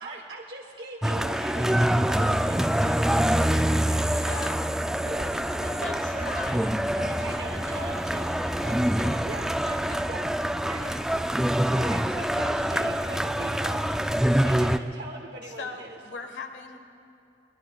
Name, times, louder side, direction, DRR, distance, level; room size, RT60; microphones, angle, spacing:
voice 1, 0.0-4.7 5.0-5.3 6.9-7.9 9.2-9.5 10.1-10.2 11.7-13.8 14.4-16.0, right 2 dB, 65° right, -1 dB, 1.1 m, -41 dB
sound 1, 1.0-14.8, equal, 5° right, 0.3 m, -25 dB
voice 2, 4.1-4.6 5.8-6.8 8.6-8.8 9.0-9.3 9.6-10.1 10.8-11.0 15.6-16.8, left 4 dB, 90° left, 5 dB, 1.3 m, -40 dB
voice 3, 5.1-9.1 9.6-9.8 10.6-11.1, right 2 dB, 40° right, -1 dB, 2.0 m, -43 dB
22.0 x 21.0 x 2.3 m, 2.7 s
head